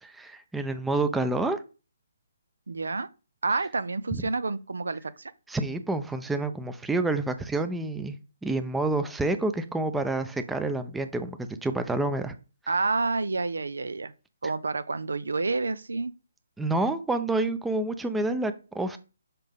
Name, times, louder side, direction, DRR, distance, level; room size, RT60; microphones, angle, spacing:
voice 1, 0.0-1.6 4.1-4.2 5.5-12.3 16.6-19.0, right 2 dB, 5° right, 0.5 m, -28 dB
voice 2, 2.7-3.1 3.4-5.3 12.7-14.1 14.4-16.1, right 3 dB, 80° right, 0.5 m, -29 dB
5.8 x 5.2 x 3.5 m
hypercardioid pair, 145°, 0 cm